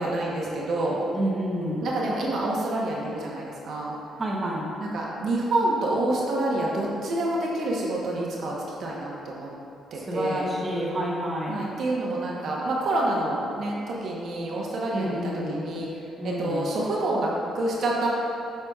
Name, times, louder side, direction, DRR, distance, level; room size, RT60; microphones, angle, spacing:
voice 1, 0.0-1.0 1.8-3.9 4.8-9.5 9.9-10.5 11.5-15.9 16.2-18.1, right 1 dB, 65° right, -3 dB, 1.0 m, -27 dB
voice 2, 1.1-1.9 4.2-4.7 10.1-11.6 14.9-15.7 16.2-16.7, equal, 25° right, -4 dB, 1.0 m, -29 dB
7.6 x 5.7 x 2.4 m, 2.8 s
cardioid pair, 90°, 0 cm